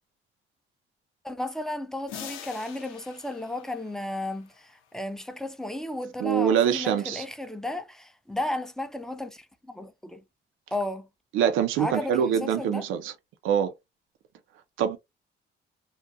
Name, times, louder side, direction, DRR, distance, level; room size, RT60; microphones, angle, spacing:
voice 1, 1.2-10.2 10.7-11.1 11.8-12.9, left 1 dB, ahead, 0.4 m, -34 dB
sound 1, 2.1-4.8, left 9 dB, 90° left, 0.5 m, -44 dB
voice 2, 6.2-7.2 11.3-13.1 13.4-13.7 14.8-15.0, right 8 dB, 85° right, 0.4 m, -24 dB
2.3 x 2.1 x 2.6 m
cardioid pair, 90°, 20 cm